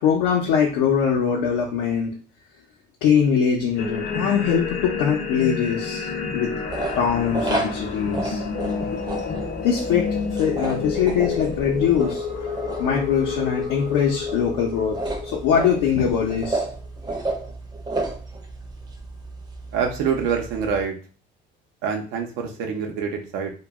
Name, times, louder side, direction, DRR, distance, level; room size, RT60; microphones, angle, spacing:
voice 1, 0.0-2.1 3.0-6.5 7.0-8.4 9.6-10.1 10.4-12.2 12.8-15.0 15.2-16.7, left 7 dB, 90° left, -2 dB, 0.6 m, -22 dB
sound 1, 3.8-16.5, left 5 dB, 50° left, 0.6 m, -29 dB
sound 2, 6.7-20.9, right 2 dB, 20° right, 0.5 m, -32 dB
voice 2, 19.7-21.0 21.8-23.5, right 6 dB, 90° right, 2 dB, 0.7 m, -25 dB
2.2 x 2.0 x 3.4 m, 0.38 s
supercardioid pair, 85°, 21 cm